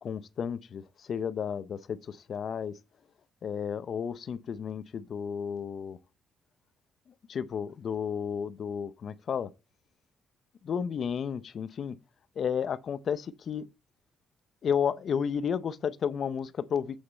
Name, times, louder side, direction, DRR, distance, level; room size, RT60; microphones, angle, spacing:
voice 1, 0.0-2.8 3.4-6.0 7.3-9.5 10.6-12.0 12.4-13.7 14.6-17.0, left 7 dB, 45° left, 0.6 m, -32 dB
8.1 x 6.4 x 4.0 m
cardioid pair, 165°, 0 cm